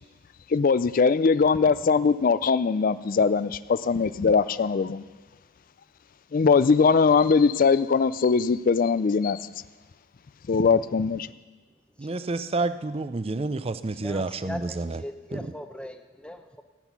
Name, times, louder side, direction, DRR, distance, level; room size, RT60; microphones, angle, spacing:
voice 1, 0.5-5.0 6.3-9.4 10.5-11.3, left 5 dB, 45° left, 15 dB, 0.4 m, -21 dB
voice 2, 12.0-15.0 15.3-15.4, right 3 dB, 30° right, 13 dB, 0.5 m, -29 dB
voice 3, 14.0-16.6, left 1 dB, 5° left, 7 dB, 0.8 m, -39 dB
15.0 x 10.0 x 6.0 m, 1.3 s
head